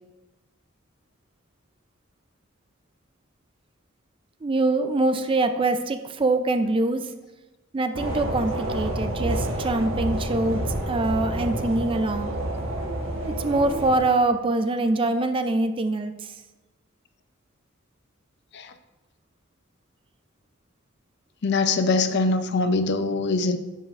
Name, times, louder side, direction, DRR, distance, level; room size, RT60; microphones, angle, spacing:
voice 1, 4.4-7.1 7.7-12.3 13.3-16.3, right 2 dB, 25° right, 9 dB, 0.4 m, -24 dB
sound 1, 7.9-14.0, right 1 dB, 70° right, 1.2 m, -28 dB
voice 2, 21.4-23.6, left 3 dB, 55° left, 9 dB, 0.5 m, -23 dB
9.0 x 7.3 x 2.5 m, 1.1 s
head